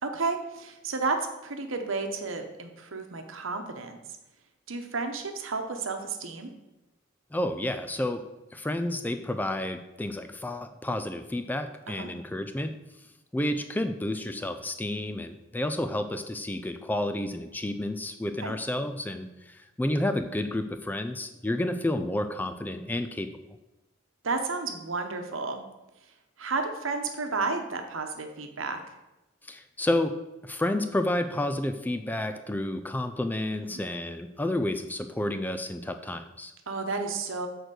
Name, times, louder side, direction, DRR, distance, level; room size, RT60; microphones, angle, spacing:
voice 1, 0.0-4.0 4.7-6.5 11.9-12.1 18.4-18.5 24.2-25.6 26.4-28.8 33.6-33.8 36.7-37.5, right 3 dB, 75° right, 5 dB, 1.0 m, -32 dB
voice 2, 7.3-12.7 13.3-23.3 29.4-36.5, left 1 dB, 10° left, 8 dB, 0.3 m, -30 dB
6.7 x 4.6 x 6.3 m, 0.99 s
head